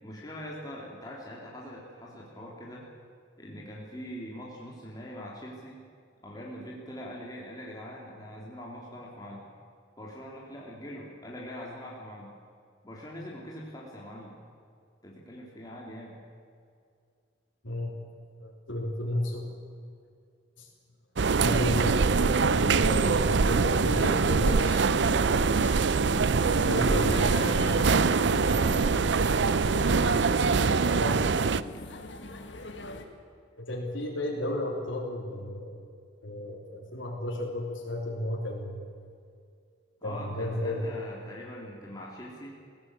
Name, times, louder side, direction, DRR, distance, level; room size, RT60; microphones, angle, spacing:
voice 1, 0.0-2.8 3.4-5.8 6.2-9.5 10.0-12.3 12.8-14.4 15.0-16.2 26.7-29.7 40.0-42.5, equal, 20° left, -4 dB, 2.9 m, -42 dB
voice 2, 17.6-18.0 18.4-19.5 20.6-20.7 21.4-24.9 25.6-25.8 26.4-27.8 29.7-30.2 30.9-31.2 33.6-35.7 36.2-38.8 40.0-40.9, left 1 dB, 90° left, -3 dB, 3.4 m, -33 dB
sound 1, 21.2-31.6, right 4 dB, 65° right, 0.6 m, -24 dB
sound 2, 26.4-33.0, left 2 dB, 70° left, 2.0 m, -40 dB
21.0 x 16.0 x 8.8 m, 2.3 s
head